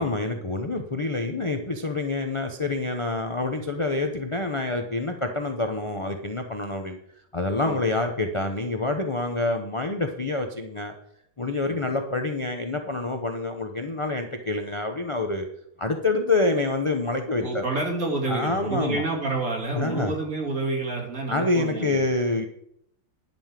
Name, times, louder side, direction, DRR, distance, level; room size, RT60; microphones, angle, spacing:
voice 1, 0.0-7.0 7.3-10.9 11.4-15.5 15.8-17.6 18.3-19.0 19.7-20.1 21.3-22.4, left 2 dB, 35° left, 5 dB, 0.5 m, -27 dB
voice 2, 17.4-22.1, right 2 dB, 50° right, 1 dB, 2.8 m, -28 dB
10.5 x 5.3 x 7.4 m, 0.73 s
omnidirectional pair, 1.9 m